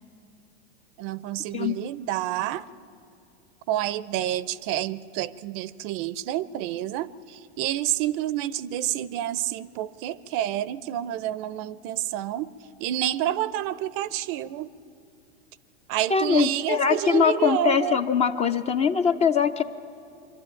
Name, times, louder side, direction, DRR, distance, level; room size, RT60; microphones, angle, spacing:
voice 1, 1.0-2.7 3.7-12.5 12.8-14.7 15.9-18.0, right 13 dB, 45° right, 18 dB, 0.5 m, -28 dB
voice 2, 16.1-19.6, left 7 dB, 20° left, 10 dB, 0.4 m, -22 dB
25.0 x 12.0 x 8.9 m, 2.6 s
supercardioid pair, 125°, 33 cm